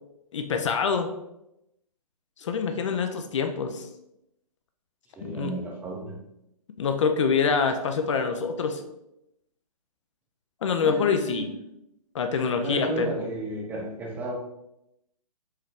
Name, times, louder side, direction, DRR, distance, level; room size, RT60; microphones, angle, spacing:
voice 1, 0.3-1.1 2.4-3.9 5.2-5.5 6.8-8.8 10.6-11.5 12.1-13.1, left 5 dB, 50° left, 6 dB, 0.5 m, -25 dB
voice 2, 5.2-6.2 10.8-11.6 12.6-14.3, right 2 dB, 10° right, -2 dB, 0.6 m, -33 dB
4.7 x 3.0 x 3.3 m, 0.85 s
figure-of-eight pair, 135°, 19 cm